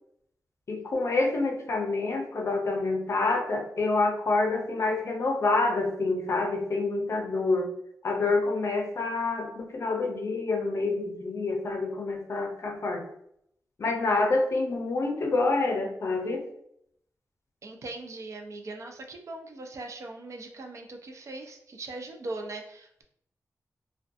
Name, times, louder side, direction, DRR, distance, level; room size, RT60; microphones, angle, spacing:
voice 1, 0.7-7.7 8.0-13.0 13.8-16.4, left 3 dB, 50° left, 3 dB, 0.5 m, -27 dB
voice 2, 17.6-23.0, right 2 dB, 55° right, 3 dB, 0.4 m, -40 dB
2.3 x 2.2 x 2.5 m, 0.72 s
wide cardioid pair, 155°, 6 cm